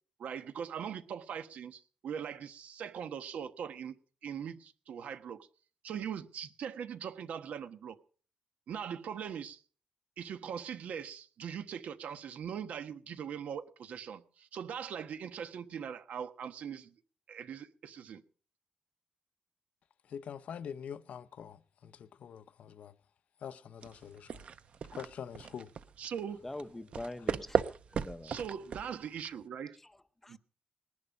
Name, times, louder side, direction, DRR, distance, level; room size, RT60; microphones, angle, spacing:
voice 1, 0.2-3.9 4.2-5.5 5.8-8.0 8.7-9.6 10.2-16.9 17.3-18.2 26.0-26.4 28.2-29.8 30.3-30.4, right 8 dB, 80° right, 1.2 m, -41 dB
voice 2, 20.1-23.0 23.4-24.5 24.9-25.7, left 8 dB, 70° left, 0.7 m, -45 dB
sound 1, 23.8-29.4, right 6 dB, 55° right, 0.7 m, -37 dB
voice 3, 26.4-28.3 29.8-30.4, left 2 dB, 10° left, 0.7 m, -44 dB
20.0 x 11.0 x 5.3 m
wide cardioid pair, 160°, 2 cm